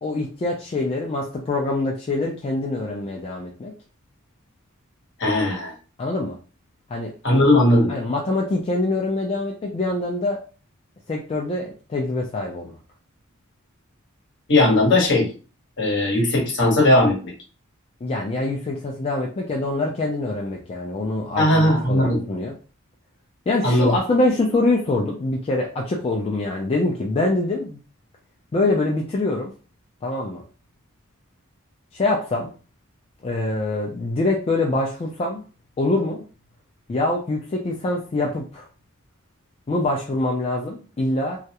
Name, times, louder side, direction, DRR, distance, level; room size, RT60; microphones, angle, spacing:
voice 1, 0.0-3.7 6.0-6.4 6.9-7.4 7.9-10.4 11.1-12.8 18.0-22.5 23.5-27.8 28.5-29.5 30.0-30.4 31.9-32.5 33.2-35.4 35.8-36.2 36.9-38.6 39.7-41.4, left 2 dB, 30° left, -1 dB, 0.3 m, -24 dB
voice 2, 5.2-5.7 7.2-7.9 14.5-15.3 15.8-17.3 21.4-22.2 23.6-23.9, left 1 dB, 55° left, -1 dB, 0.9 m, -18 dB
2.3 x 2.0 x 2.8 m, 0.36 s
head